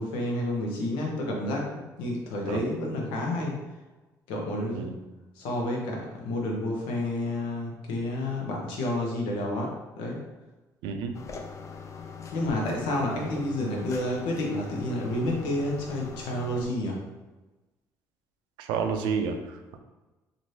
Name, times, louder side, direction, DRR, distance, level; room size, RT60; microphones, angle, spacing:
voice 1, 0.0-3.6 4.3-4.9 5.4-10.2 12.3-17.0, left 1 dB, 85° left, -1 dB, 0.7 m, -30 dB
sound 1, 11.1-16.7, left 5 dB, 40° left, 0.4 m, -42 dB
voice 2, 18.6-19.8, right 6 dB, 85° right, 5 dB, 0.4 m, -30 dB
3.1 x 2.6 x 2.7 m, 1.1 s
supercardioid pair, 75°, 8 cm